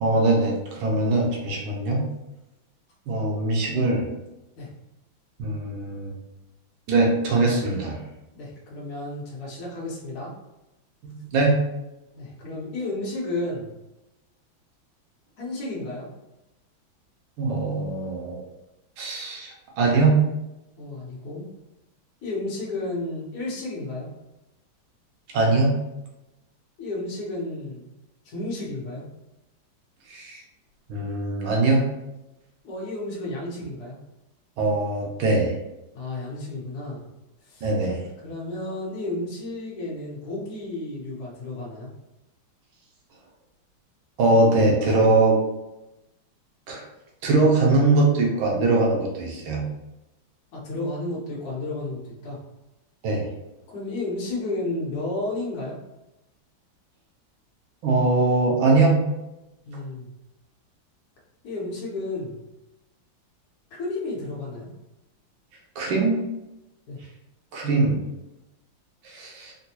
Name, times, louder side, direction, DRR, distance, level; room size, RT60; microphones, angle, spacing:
voice 1, 0.0-2.0 3.1-4.1 5.4-6.1 6.9-8.0 11.0-11.5 17.4-18.4 19.0-20.2 25.3-25.7 30.1-30.4 30.9-31.8 34.6-35.5 37.6-38.0 44.2-45.4 46.7-46.8 47.2-49.6 53.0-53.3 57.8-59.0 65.8-66.2 67.5-68.0 69.0-69.5, right 2 dB, 85° right, -1 dB, 1.6 m, -21 dB
voice 2, 8.3-10.3 12.1-13.7 15.4-16.1 20.8-21.5 22.2-24.1 26.8-27.9 28.2-29.0 32.6-34.0 35.9-37.0 37.4-37.7 38.2-41.9 50.5-52.4 53.7-55.8 59.7-60.1 61.4-62.4 63.7-64.7 66.9-67.0, left 2 dB, 60° left, -5 dB, 1.4 m, -32 dB
4.1 x 2.2 x 2.8 m, 0.97 s
omnidirectional pair, 2.2 m